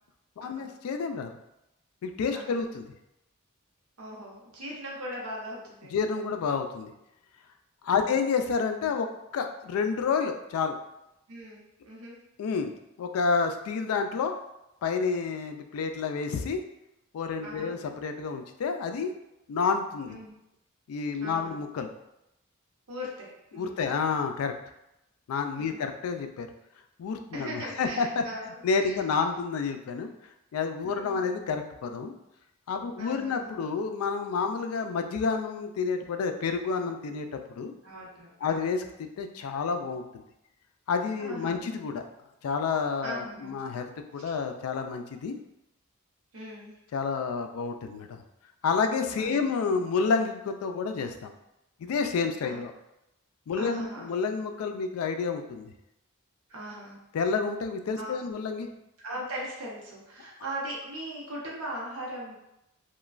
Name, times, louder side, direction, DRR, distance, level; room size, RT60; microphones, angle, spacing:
voice 1, 0.4-1.4 2.0-2.8 5.9-6.9 7.8-9.1 9.3-10.8 12.4-12.7 13.0-14.3 14.8-16.6 17.1-19.1 19.5-20.2 20.9-21.9 23.5-24.5 25.3-26.5 27.0-28.2 28.6-30.1 30.5-32.1 32.7-37.3 37.6-37.7 38.4-40.2 40.9-42.1 42.4-45.4 46.9-48.2 48.6-51.3 51.8-52.7 53.5-55.7 57.1-58.7, left 5 dB, 85° left, 7 dB, 0.3 m, -29 dB
voice 2, 4.0-5.9 7.9-8.0 11.3-12.2 17.4-17.7 20.1-20.3 21.2-21.6 22.9-23.8 25.6-25.9 27.3-29.0 30.9-31.3 33.0-33.5 37.8-38.7 41.2-41.7 43.0-43.5 46.3-46.8 49.2-49.5 52.4-52.6 53.5-54.1 56.5-57.0 58.0-58.2 59.0-62.3, right 1 dB, 90° right, -4 dB, 0.8 m, -39 dB
3.0 x 2.2 x 2.3 m, 0.88 s
head